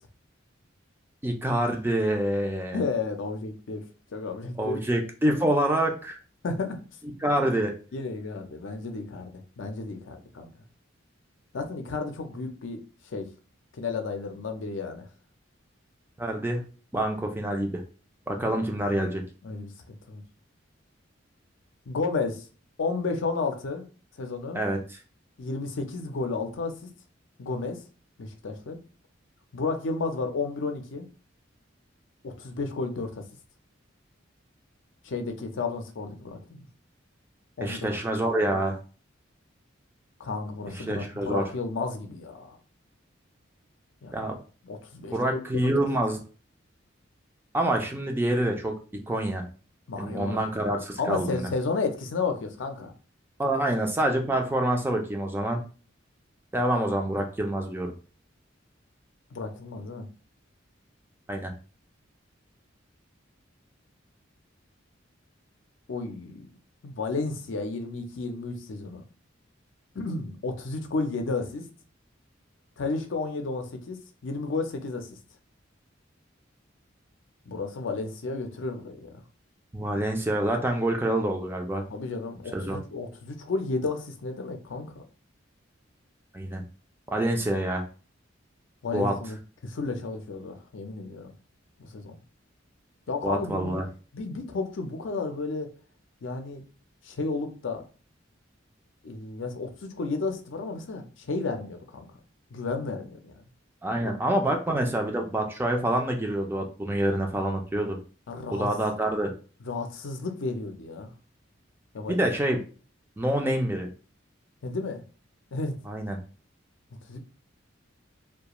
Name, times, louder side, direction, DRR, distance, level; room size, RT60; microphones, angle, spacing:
voice 1, 1.2-2.8 4.6-6.2 7.2-7.7 16.2-16.6 16.9-17.8 18.3-19.2 24.5-25.0 37.6-38.8 40.7-41.4 44.1-44.4 45.1-46.2 47.5-48.7 49.1-49.4 50.0-51.5 53.4-55.6 56.5-57.9 61.3-61.5 79.7-81.8 82.5-82.8 86.3-86.6 87.1-87.8 88.9-89.1 93.2-93.8 103.8-108.0 108.5-109.3 112.1-112.6 113.2-113.9 115.9-116.2, right 1 dB, 10° right, 3 dB, 0.4 m, -26 dB
voice 2, 2.7-4.8 6.4-6.8 7.9-10.5 11.5-13.3 13.7-15.1 19.4-20.2 21.9-22.5 22.8-23.8 24.2-24.6 25.4-26.8 27.4-27.8 28.2-28.8 29.5-31.0 32.2-33.2 35.0-36.7 37.6-37.9 40.2-42.6 44.0-44.3 44.6-45.4 45.8-45.9 49.9-50.4 51.0-52.9 59.3-60.1 65.9-66.5 66.8-69.0 69.9-71.7 72.8-75.1 77.5-79.2 81.9-85.0 88.8-89.4 89.6-91.3 91.8-92.2 93.1-93.8 94.1-95.7 96.2-96.6 97.0-97.8 99.0-102.2 102.5-103.4 104.0-104.1 108.3-108.7 109.6-111.1 111.9-112.3 114.6-115.0 115.5-115.8 117.1-117.2, left 3 dB, 70° left, 5 dB, 0.5 m, -32 dB
2.3 x 2.2 x 2.9 m, 0.37 s
head